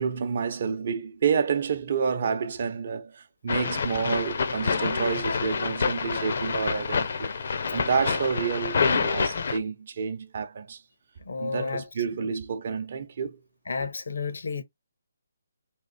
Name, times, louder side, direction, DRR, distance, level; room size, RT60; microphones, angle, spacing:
voice 1, 0.0-7.3 7.7-10.8 11.4-13.4, right 6 dB, 50° right, 0.7 m, -29 dB
sound 1, 3.5-9.6, left 5 dB, 55° left, 0.7 m, -27 dB
voice 2, 11.2-11.9 12.2-12.3 13.7-14.6, left 4 dB, 75° left, 1.0 m, -31 dB
3.7 x 2.6 x 4.1 m
hypercardioid pair, 160°, 0 cm